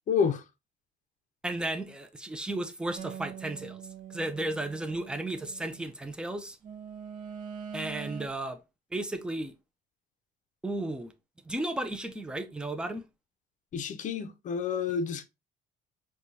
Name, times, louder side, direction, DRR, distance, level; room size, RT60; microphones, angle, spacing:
voice 1, 0.1-0.4 13.7-15.2, left 6 dB, 50° left, 0.6 m, -29 dB
voice 2, 1.4-3.8 4.1-6.6 7.7-8.6 8.9-9.5 10.6-11.1 11.5-13.0, right 1 dB, 5° right, 0.5 m, -34 dB
sound 1, 3.0-5.9 6.6-8.3, right 8 dB, 50° right, 0.6 m, -43 dB
4.9 x 2.3 x 2.6 m
cardioid pair, 110°, 17 cm